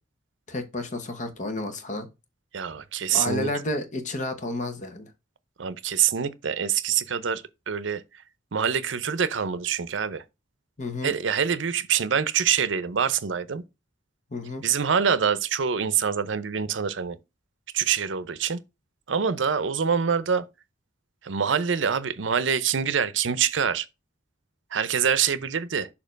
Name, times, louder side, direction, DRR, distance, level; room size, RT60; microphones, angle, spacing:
voice 1, 0.5-2.1 3.1-5.1 10.8-11.1 14.3-14.6, left 2 dB, 40° left, 1.1 m, -31 dB
voice 2, 2.5-3.5 5.6-8.0 8.5-10.2 11.0-13.6 14.6-17.2 17.7-18.6 19.1-20.4 21.2-23.9 24.7-25.9, right 7 dB, 75° right, 0.6 m, -25 dB
6.6 x 2.8 x 5.1 m
head